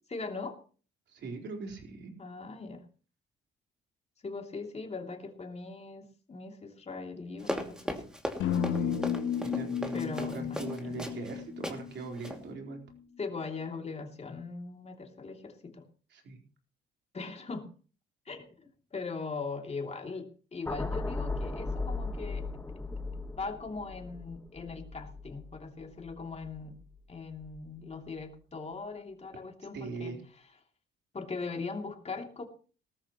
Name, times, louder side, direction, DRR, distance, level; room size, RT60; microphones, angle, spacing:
voice 1, 0.1-0.6 2.2-2.8 4.2-7.9 9.9-11.1 13.2-15.9 17.1-17.7 18.2-22.8 23.3-26.7 27.1-30.2 31.1-32.5, left 4 dB, 30° left, 3 dB, 2.9 m, -40 dB
voice 2, 1.1-2.1 8.7-8.9 9.4-12.8 16.1-16.4 29.7-30.2, right 4 dB, 65° right, 3 dB, 4.2 m, -41 dB
Run, 7.4-11.3 11.6-11.8 12.2-12.4, equal, 5° right, 2.5 m, -37 dB
sound 1, 8.4-12.6, left 8 dB, 85° left, 1.4 m, -33 dB
sound 2, 20.7-26.9 27.3-27.6, left 3 dB, 10° left, 1.4 m, -37 dB
18.5 x 13.5 x 3.1 m, 0.38 s
cardioid pair, 90°, 20 cm